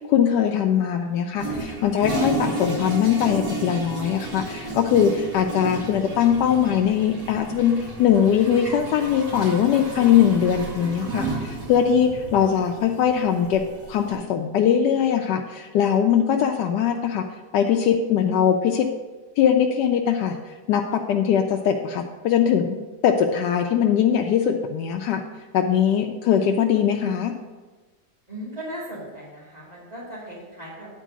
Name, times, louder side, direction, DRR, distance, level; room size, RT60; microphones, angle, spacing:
voice 1, 0.1-13.6 13.9-17.2 17.5-18.9 19.4-22.8 23.0-25.2 25.5-27.3, left 8 dB, 85° left, 3 dB, 1.2 m, -21 dB
Toilet flush, 1.4-14.2, right 2 dB, 85° right, 2.7 m, -32 dB
voice 2, 28.3-30.9, equal, 25° right, -11 dB, 2.6 m, -37 dB
10.0 x 4.5 x 6.1 m, 1.3 s
omnidirectional pair, 1.8 m